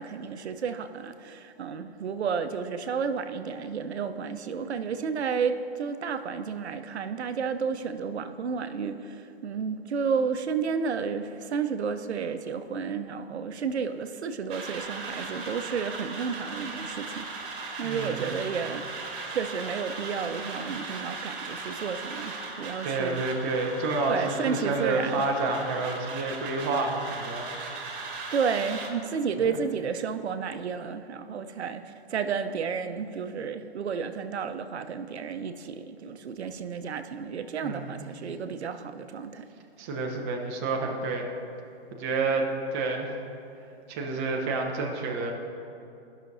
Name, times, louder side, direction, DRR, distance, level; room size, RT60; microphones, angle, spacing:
voice 1, 0.0-17.3 17.8-23.2 24.1-25.2 28.3-31.8 32.1-39.5, right 6 dB, 80° right, 10 dB, 0.6 m, -31 dB
sound 1, 14.5-28.9, right 3 dB, 50° right, 1.5 m, -38 dB
voice 2, 17.8-18.3 22.8-27.5 37.6-38.0 39.8-41.3 41.9-43.1 43.9-45.3, right 3 dB, 15° right, 2 dB, 0.4 m, -29 dB
13.5 x 5.9 x 2.6 m, 2.7 s
hypercardioid pair, 135°, 32 cm